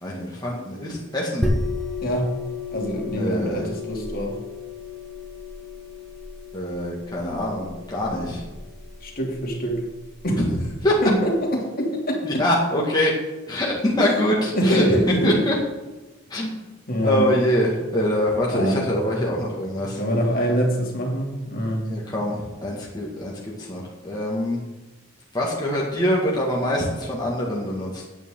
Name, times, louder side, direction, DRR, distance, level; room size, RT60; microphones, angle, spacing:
voice 1, 0.0-1.5 3.2-3.6 6.5-8.4 10.4-11.0 12.2-13.1 13.5-14.9 15.2-15.6 16.3-16.5 17.0-20.0 21.9-23.3 23.6-24.6 25.3-28.1, left 1 dB, 20° left, -4 dB, 2.0 m, -24 dB
sound 1, 1.4-10.8, left 2 dB, ahead, 1.3 m, -32 dB
voice 2, 2.0-2.3 2.7-4.3 9.0-9.8 10.2-10.4 11.0-12.4 14.0-14.2 14.5-15.4 16.9-17.3 18.4-18.8 20.0-21.8, equal, 50° left, -1 dB, 2.9 m, -24 dB
16.0 x 9.0 x 3.9 m, 1.1 s
head